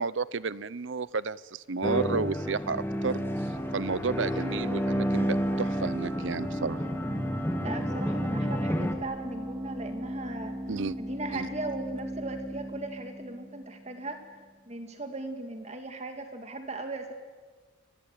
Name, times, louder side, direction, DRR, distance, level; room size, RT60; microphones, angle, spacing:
voice 1, 0.0-3.2 3.7-6.8 10.7-11.0 11.3-11.5, right 4 dB, 70° right, 19 dB, 0.8 m, -32 dB
sound 1, 1.8-8.9, equal, 10° left, 1.9 m, -30 dB
sound 2, 2.9-14.3, equal, 15° right, 3.3 m, -38 dB
voice 2, 7.6-10.5 11.0-14.2 14.7-17.1, right 2 dB, 35° right, 6 dB, 2.3 m, -38 dB
29.0 x 22.5 x 9.1 m, 1.4 s
head